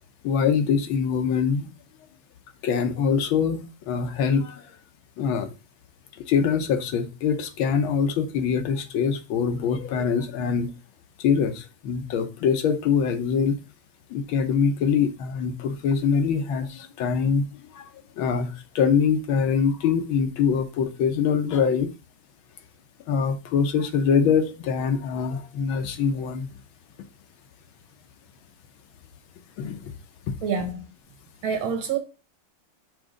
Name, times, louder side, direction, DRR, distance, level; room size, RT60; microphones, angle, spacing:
voice 1, 0.2-1.7 2.6-4.6 5.2-5.5 6.3-10.7 11.2-13.6 14.1-17.4 17.7-17.9 18.2-21.9 23.1-26.5 29.6-29.8 30.3-30.4, left 6 dB, 75° left, 1.6 m, -24 dB
voice 2, 30.4-30.8 31.4-32.0, right 6 dB, 70° right, 2.0 m, -26 dB
6.2 x 3.0 x 5.0 m
omnidirectional pair, 2.3 m